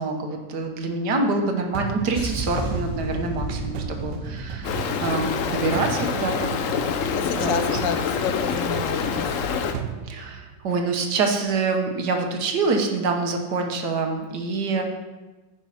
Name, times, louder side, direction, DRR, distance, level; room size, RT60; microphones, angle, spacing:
voice 1, 0.0-6.6 7.3-7.8 10.1-14.8, right 3 dB, 70° right, 4 dB, 1.6 m, -26 dB
sound 1, 1.7-10.9, right 8 dB, 85° right, 1.3 m, -35 dB
sound 2, 2.1-6.7 7.0-7.3, right 1 dB, 30° left, 3.6 m, -33 dB
Stream, 4.6-9.7, left 7 dB, 60° left, 0.9 m, -26 dB
voice 2, 7.1-9.3 14.7-14.8, left 8 dB, 80° left, 9 dB, 1.4 m, -30 dB
10.0 x 5.4 x 5.7 m, 1.2 s
omnidirectional pair, 1.9 m